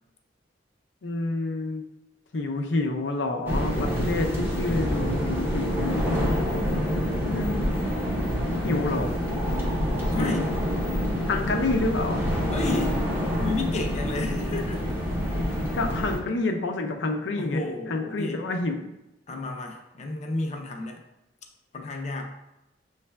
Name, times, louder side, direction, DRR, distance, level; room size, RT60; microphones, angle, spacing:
voice 1, 1.0-1.8 2.3-6.1 7.2-7.8 8.6-9.1 10.0-10.4 11.3-12.3 15.6-17.6 17.9-18.8, left 2 dB, 90° left, 3 dB, 0.6 m, -28 dB
sound 1, 3.5-16.2, equal, 10° right, 0.7 m, -27 dB
voice 2, 10.1-10.5 12.5-13.0 13.4-14.9 17.4-18.4 19.3-21.0 21.7-22.3, left 2 dB, 40° left, 2 dB, 0.6 m, -32 dB
6.5 x 3.2 x 2.2 m, 0.90 s
head